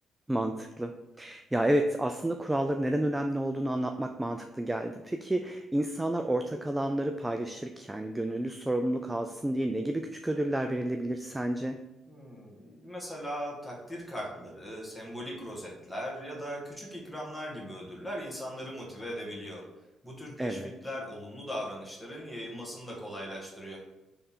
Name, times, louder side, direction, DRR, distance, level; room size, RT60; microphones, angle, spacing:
voice 1, 0.3-11.8 20.4-20.7, right 1 dB, 10° right, 6 dB, 0.3 m, -30 dB
voice 2, 12.1-19.6 20.0-23.8, equal, 10° left, -3 dB, 1.5 m, -39 dB
3.7 x 3.3 x 4.3 m, 1.0 s
cardioid pair, 90°, 0 cm